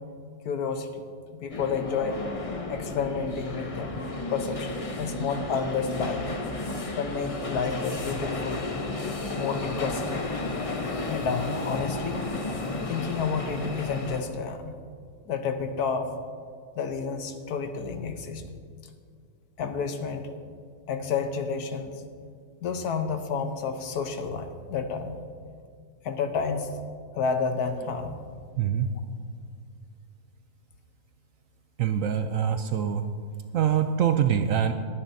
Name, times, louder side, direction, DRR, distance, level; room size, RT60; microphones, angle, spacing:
voice 1, 0.4-1.1 1.3-2.2 2.7-4.0 4.3-6.3 7.0-8.7 9.4-10.2 11.1-12.2 12.9-14.8 15.3-16.1 16.8-18.4 19.6-20.3 20.9-22.0 22.6-25.2 26.0-26.7 27.1-28.2, left 5 dB, 75° left, 7 dB, 1.3 m, -30 dB
sound 1, 1.5-14.2, left 2 dB, 35° left, 0.5 m, -33 dB
voice 2, 28.6-28.9 31.8-33.0 33.5-34.7, right 9 dB, 70° right, 8 dB, 0.8 m, -24 dB
21.0 x 9.8 x 2.7 m, 2.1 s
omnidirectional pair, 1.7 m